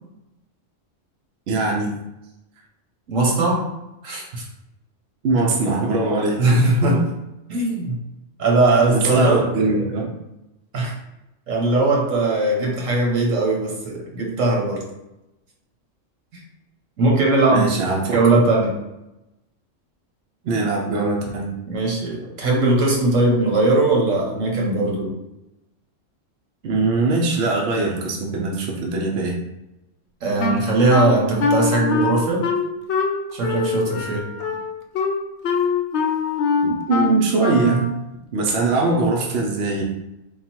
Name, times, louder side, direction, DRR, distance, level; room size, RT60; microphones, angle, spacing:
voice 1, 1.5-1.9 5.2-7.0 8.8-10.1 17.5-18.4 20.4-21.5 26.6-29.4 36.6-37.9 38.3-39.8, right 3 dB, 65° right, -1 dB, 0.9 m, -21 dB
voice 2, 3.1-3.6 4.0-4.4 6.4-7.0 7.5-8.0 8.4-9.4 10.7-10.9 11.5-14.8 17.0-17.9 18.1-18.8 21.7-25.1 30.2-32.4 33.3-34.2, right 2 dB, 85° right, -2 dB, 1.4 m, -19 dB
Wind instrument woodwind instrument, 30.4-37.9, left 3 dB, 65° left, 0.8 m, -23 dB
3.7 x 2.4 x 4.4 m, 0.93 s
omnidirectional pair, 1.3 m